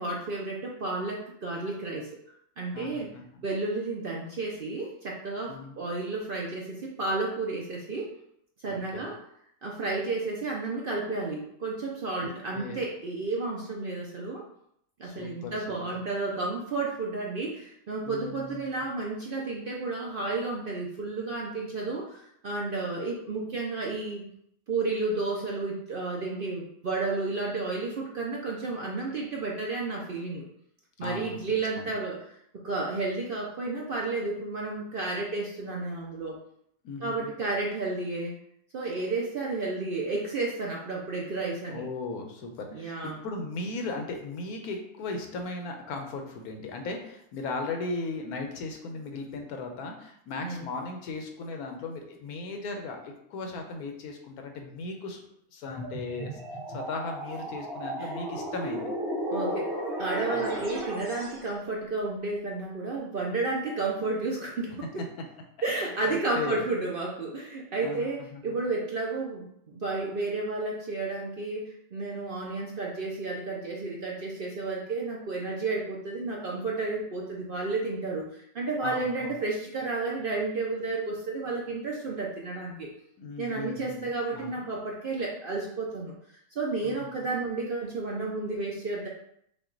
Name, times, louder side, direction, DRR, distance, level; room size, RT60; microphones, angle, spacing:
voice 1, 0.0-2.1 2.6-3.1 3.4-8.1 8.6-9.2 9.6-14.4 15.0-24.2 24.7-30.4 31.0-32.2 32.6-36.4 37.0-38.3 38.7-41.8 42.7-43.2 50.4-50.6 58.0-58.1 59.3-59.7 60.0-64.7 65.6-82.9 83.4-89.1, right 3 dB, 55° right, -2 dB, 0.6 m, -32 dB
voice 2, 2.7-3.4 5.5-5.8 8.7-9.1 12.2-12.8 15.0-15.8 18.0-18.7 31.0-31.4 31.8-31.9 36.8-37.3 41.7-55.2 55.5-56.4 56.7-58.9 60.3-60.6 66.0-66.6 67.8-68.6 78.8-79.4 83.2-84.6 86.8-87.1, left 3 dB, 85° left, 3 dB, 1.3 m, -37 dB
sound 1, 55.7-61.4, right 1 dB, 25° right, 1.3 m, -34 dB
5.9 x 2.2 x 3.8 m, 0.72 s
omnidirectional pair, 1.6 m